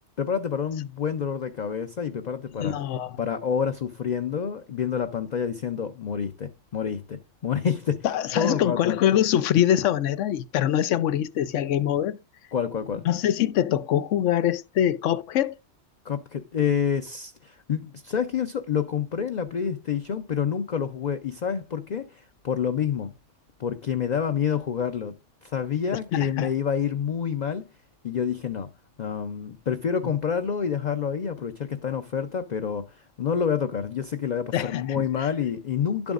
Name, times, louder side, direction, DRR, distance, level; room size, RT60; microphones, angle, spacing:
voice 1, 0.2-2.8 3.2-8.1 8.3-9.0 12.5-13.1 16.0-23.1 23.6-27.7 28.0-28.7 29.0-36.1, left 7 dB, 45° left, 0.6 m, -28 dB
voice 2, 2.5-3.2 8.0-12.2 13.0-15.6 26.1-26.5 34.5-35.3, left 11 dB, 85° left, 1.0 m, -24 dB
11.5 x 7.1 x 2.4 m
omnidirectional pair, 1.2 m